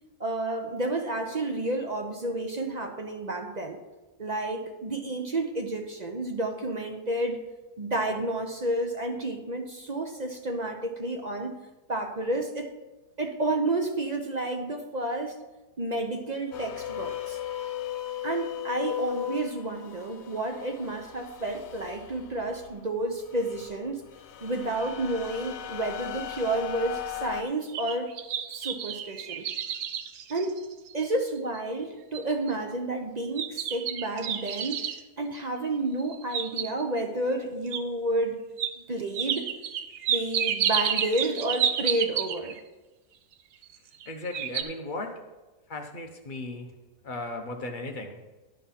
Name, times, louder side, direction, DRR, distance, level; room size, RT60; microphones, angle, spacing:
voice 1, 0.2-3.8 4.2-7.4 7.8-11.5 11.9-12.7 13.2-15.4 15.8-17.4 18.2-24.0 24.4-28.1 28.5-29.5 30.3-30.6 30.9-34.8 35.2-38.4 38.8-39.5 40.1-42.6, right 2 dB, 40° right, 3 dB, 0.6 m, -30 dB
sound 1, 16.5-22.7 23.2-27.4, left 12 dB, 70° left, 0.6 m, -37 dB
sound 2, 27.5-31.0 31.5-31.6 32.1-32.5 33.4-35.0 36.0-37.0 37.7-37.8 38.6-38.7 39.1-42.6 43.6-44.1 44.3-44.6, right 9 dB, 85° right, 1.2 m, -30 dB
voice 2, 44.0-45.3 45.7-46.7 47.0-48.2, left 2 dB, 35° left, 3 dB, 1.0 m, -36 dB
11.0 x 5.6 x 5.8 m, 1.1 s
omnidirectional pair, 1.7 m